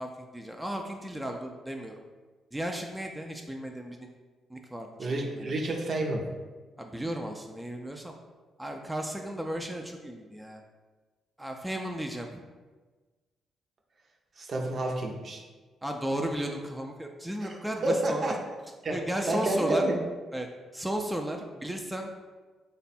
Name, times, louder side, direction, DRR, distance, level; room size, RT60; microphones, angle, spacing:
voice 1, 0.0-2.0 2.5-4.1 4.5-5.5 6.8-8.1 8.6-10.6 11.4-12.4 15.8-18.3 18.9-19.8 20.3-20.5 20.7-22.1, right 1 dB, 10° right, 2 dB, 0.3 m, -34 dB
voice 2, 5.0-6.2 14.4-15.4 17.4-17.6 17.8-18.4 18.8-19.0 19.3-19.9, right 2 dB, 50° right, 1 dB, 0.6 m, -29 dB
3.3 x 2.2 x 4.1 m, 1.3 s
supercardioid pair, 60°, 0 cm